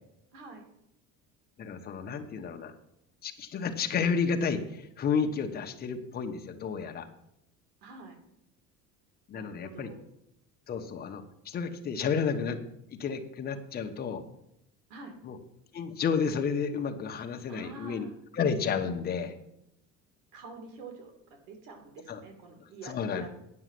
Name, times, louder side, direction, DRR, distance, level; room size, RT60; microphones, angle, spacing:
voice 1, 0.3-0.6 7.8-8.2 9.3-10.0 14.9-15.2 17.5-18.1 20.3-23.3, right 3 dB, 85° right, 4 dB, 2.8 m, -47 dB
voice 2, 1.6-2.7 3.2-7.1 9.3-9.9 10.7-12.6 12.9-14.2 15.2-15.4 15.7-18.1 18.4-19.3 22.1-22.2 22.9-23.3, left 6 dB, 30° left, 4 dB, 1.1 m, -31 dB
9.7 x 6.3 x 7.7 m, 0.80 s
cardioid pair, 165°, 31 cm